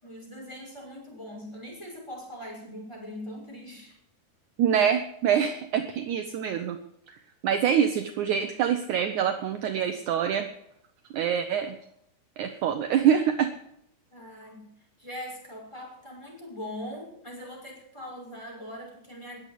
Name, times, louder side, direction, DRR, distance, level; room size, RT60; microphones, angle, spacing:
voice 1, 0.0-4.0 14.1-14.7 15.0-19.4, left 1 dB, 5° left, -2 dB, 5.6 m, -41 dB
voice 2, 4.6-6.8 7.1-7.2 7.4-10.5 11.1-11.8 12.4-13.5, right 8 dB, 75° right, 7 dB, 1.8 m, -25 dB
21.0 x 8.1 x 6.8 m, 0.74 s
omnidirectional pair, 4.6 m